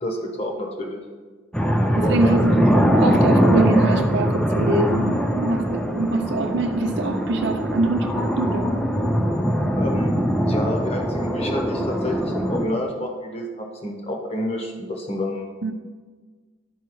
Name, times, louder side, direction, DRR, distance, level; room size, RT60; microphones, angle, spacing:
voice 1, 0.0-1.0 2.0-2.4 9.8-10.1 10.4-15.5, left 1 dB, 30° left, 1 dB, 1.0 m, -29 dB
sound 1, 1.5-12.7, equal, 5° left, 0.5 m, -21 dB
voice 2, 1.9-8.8 15.6-15.7, right 2 dB, 60° right, 4 dB, 0.5 m, -24 dB
11.5 x 4.6 x 3.1 m, 1.4 s
head